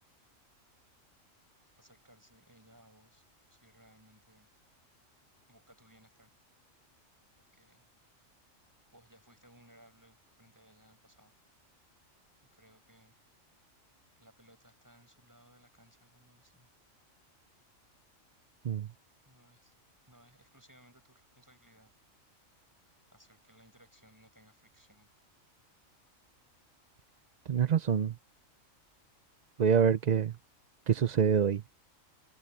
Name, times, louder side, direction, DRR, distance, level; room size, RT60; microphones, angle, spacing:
voice 1, 1.8-3.2 3.5-4.5 5.5-6.3 7.4-7.8 8.9-11.4 12.5-13.1 14.2-16.7 19.2-19.7 20.1-21.9 23.1-25.1, equal, 15° right, 7.7 m, -62 dB
voice 2, 27.5-28.1 29.6-30.4 30.9-31.8, right 7 dB, 50° right, 0.5 m, -26 dB
omnidirectional pair, 1.4 m